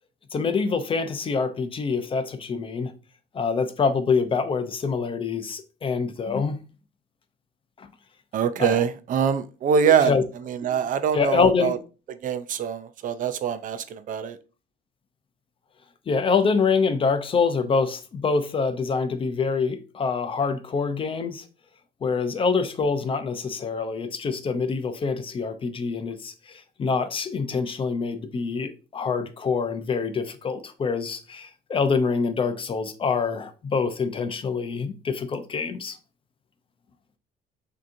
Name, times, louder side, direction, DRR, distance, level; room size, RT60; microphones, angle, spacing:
voice 1, 0.3-2.9 3.3-6.6 7.8-7.9 8.6-8.8 9.8-10.2 11.1-11.8 16.1-21.4 22.0-36.0, left 5 dB, 30° left, 0.5 m, -25 dB
voice 2, 8.3-10.1 10.4-11.8 12.2-14.4, right 7 dB, 50° right, 0.5 m, -24 dB
6.0 x 2.8 x 2.6 m
cardioid pair, 110°, 17 cm